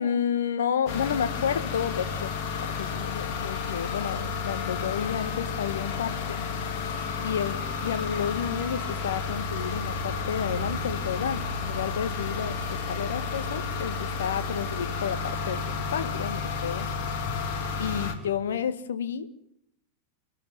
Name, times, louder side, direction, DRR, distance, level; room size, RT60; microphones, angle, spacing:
voice 1, 0.0-2.3 2.6-6.4 7.2-12.6 12.9-16.9 17.8-19.3, left 8 dB, 65° left, 11 dB, 1.5 m, -31 dB
sound 1, 0.9-18.1, left 5 dB, 45° left, 3.2 m, -31 dB
28.5 x 12.5 x 9.3 m, 0.79 s
figure-of-eight pair, 90°, 0 cm